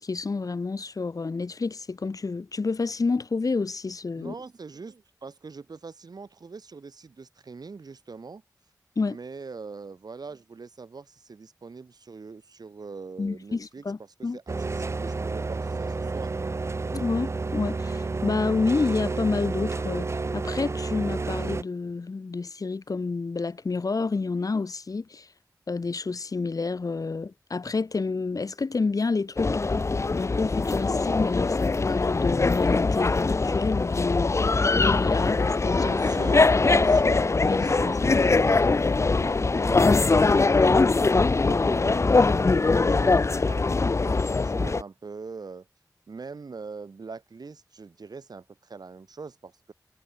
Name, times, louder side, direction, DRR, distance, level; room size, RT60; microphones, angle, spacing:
voice 1, 0.0-4.3 9.0-9.2 13.2-14.4 16.9-25.3 25.7-29.6 30.2-34.4 34.7-35.9 37.4-37.9, left 4 dB, 60° left, 1.0 m, -29 dB
voice 2, 4.2-8.4 9.1-16.3 35.7-40.9 41.4-45.7 46.1-49.7, right 4 dB, 80° right, 3.3 m, -42 dB
sound 1, 14.5-21.6, right 3 dB, 45° right, 0.5 m, -30 dB
sound 2, 29.4-44.8, left 3 dB, 45° left, 0.6 m, -22 dB
wide cardioid pair, 55°, 7 cm